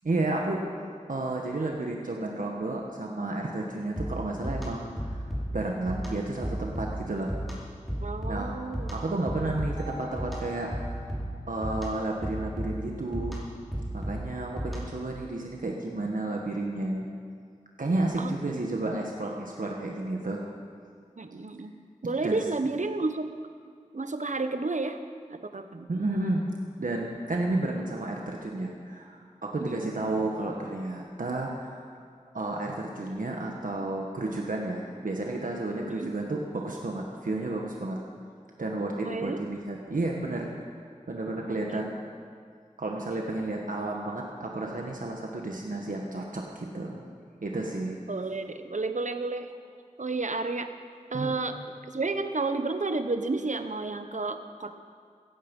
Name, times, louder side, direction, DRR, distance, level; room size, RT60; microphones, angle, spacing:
voice 1, 0.0-5.2 5.5-7.3 8.3-8.5 8.9-11.1 11.5-13.5 13.9-17.1 17.8-20.4 22.2-22.4 25.9-26.4 26.8-32.0 32.3-38.0 38.6-40.5 41.1-42.0 42.8-47.0 47.4-48.0 51.1-51.3, right 2 dB, 90° right, 0 dB, 1.5 m, -32 dB
sound 1, 4.0-15.1, equal, ahead, 4.6 m, -35 dB
voice 2, 8.0-8.9 18.2-18.7 21.2-21.7 22.0-23.3 23.9-25.0 25.3-25.9 29.6-29.9 35.9-36.1 39.0-39.4 41.5-41.8 48.1-49.5 50.0-50.7 51.1-51.6 51.8-54.7, right 3 dB, 65° right, 8 dB, 1.1 m, -31 dB
sound 2, 9.8-13.7, left 1 dB, 30° right, 4.0 m, -47 dB
16.5 x 16.0 x 5.5 m, 2.2 s
wide cardioid pair, 60°, 13 cm